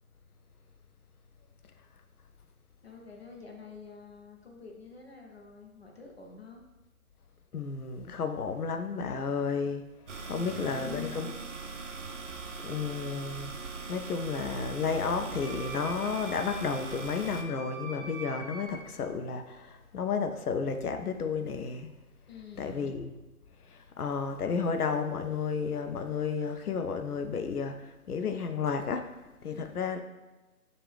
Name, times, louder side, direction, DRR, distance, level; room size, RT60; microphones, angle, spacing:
voice 1, 2.8-6.6 10.2-11.3 22.3-23.0 29.4-29.8, left 4 dB, 45° left, 0.8 m, -49 dB
voice 2, 7.5-11.3 12.0-12.4 12.6-13.6 13.9-21.9 22.6-23.2 23.5-29.2 29.4-30.0, left 5 dB, 85° left, 0.6 m, -32 dB
sound 1, 10.1-17.4, right 3 dB, 55° right, 0.5 m, -40 dB
Wind instrument woodwind instrument, 15.4-18.7, right 3 dB, 5° left, 1.5 m, -44 dB
4.6 x 2.5 x 3.3 m
figure-of-eight pair, 160°, 44 cm